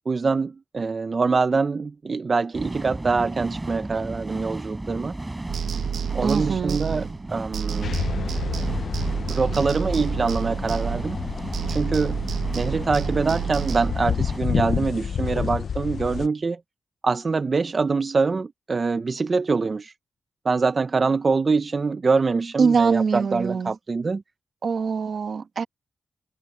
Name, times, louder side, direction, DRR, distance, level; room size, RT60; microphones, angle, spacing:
voice 1, 0.1-5.1 6.1-8.0 9.3-11.2 11.7-12.2 12.5-16.6 17.0-19.9 20.4-24.2, right 4 dB, 40° right, 0.6 m, -24 dB
sound 1, 2.5-14.4, right 2 dB, 15° right, 5.1 m, -35 dB
sound 2, 5.5-7.3 7.5-11.3 11.5-13.9, right 8 dB, 90° right, 0.9 m, -30 dB
voice 2, 6.2-6.8 22.6-23.7 24.6-25.6, right 5 dB, 55° right, 1.1 m, -23 dB
sound 3, 7.8-16.3, left 7 dB, 65° left, 0.5 m, -30 dB
wide cardioid pair, 105°, 0 cm